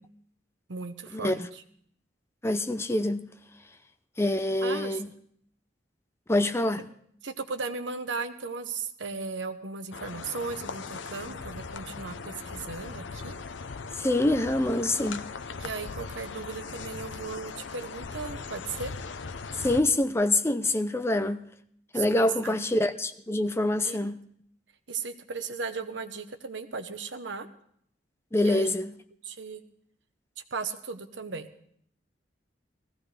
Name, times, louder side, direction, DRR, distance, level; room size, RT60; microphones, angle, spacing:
voice 1, 0.7-1.6 4.6-5.0 7.2-13.4 15.6-18.9 21.9-22.5 23.8-24.0 24.9-27.5 28.4-28.8 29.2-29.6 30.5-31.5, right 4 dB, 80° right, 1.0 m, -36 dB
voice 2, 2.4-3.2 4.2-5.1 6.3-6.9 14.0-15.2 19.6-21.4 21.9-24.2 28.3-28.9, left 1 dB, 15° left, 0.5 m, -25 dB
sound 1, 9.9-19.8, left 4 dB, 85° left, 0.7 m, -39 dB
19.0 x 15.0 x 3.3 m
head